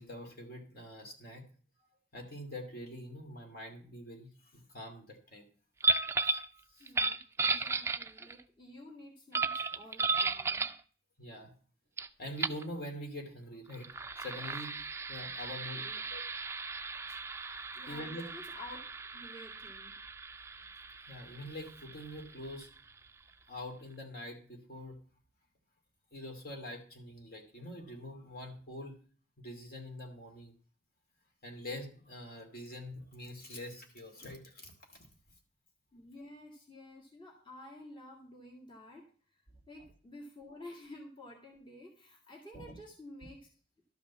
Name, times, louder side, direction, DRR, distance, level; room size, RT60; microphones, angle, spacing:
voice 1, 0.0-1.4 2.1-5.5 6.7-6.9 11.2-11.5 12.2-13.9 14.2-14.8 15.1-15.8 16.1-16.2 16.8-18.3 21.1-22.7 23.5-25.0 26.1-29.0 29.4-30.5 31.4-35.1 42.5-42.7, left 1 dB, 50° left, 3 dB, 2.5 m, -45 dB
sound 1, 5.8-6.5 6.9-8.4 9.3-10.8 12.0-12.1 12.4-12.6 13.7-23.0, right 3 dB, 15° right, 0.4 m, -35 dB
voice 2, 6.8-10.7 15.4-16.0 17.7-18.8 19.1-20.0 35.9-39.4 39.7-43.5, left 1 dB, 25° left, -1 dB, 1.9 m, -51 dB
12.0 x 5.3 x 7.1 m, 0.42 s
head